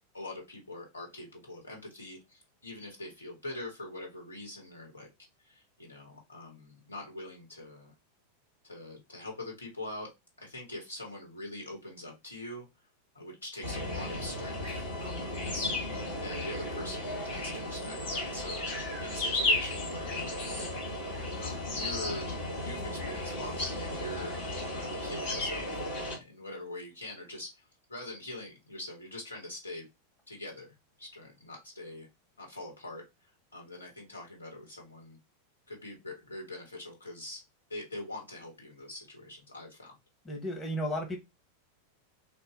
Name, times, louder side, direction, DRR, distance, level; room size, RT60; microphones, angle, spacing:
voice 1, 0.1-5.1 5.4-7.9 8.6-10.1 10.4-12.6 13.1-15.7 16.2-18.7 19.0-20.4 21.4-24.4 24.7-29.9 30.3-32.1 32.4-33.1 33.5-35.2 35.7-37.4 37.7-39.9, left 1 dB, 75° left, 1.5 m, -43 dB
sound 1, 13.6-26.2, left 2 dB, 55° left, 1.5 m, -34 dB
voice 2, 40.2-41.2, equal, 20° left, 1.2 m, -33 dB
2.8 x 2.3 x 3.7 m
figure-of-eight pair, 90°, 0 cm